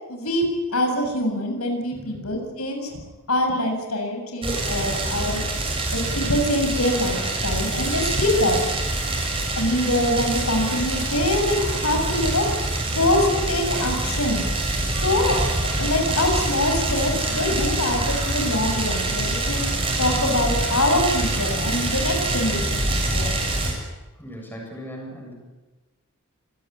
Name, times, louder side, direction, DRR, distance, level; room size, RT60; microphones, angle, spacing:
voice 1, 0.1-2.9 3.3-5.4 5.9-8.6 9.5-12.7 12.9-14.5 15.0-15.4 15.8-19.6 20.0-23.3, left 1 dB, 85° left, 3 dB, 7.3 m, -24 dB
sound 1, 4.4-23.7, right 2 dB, 25° right, 7.0 m, -25 dB
voice 2, 24.2-25.3, equal, 10° left, -1 dB, 7.9 m, -38 dB
26.5 x 19.0 x 9.8 m, 1.2 s
head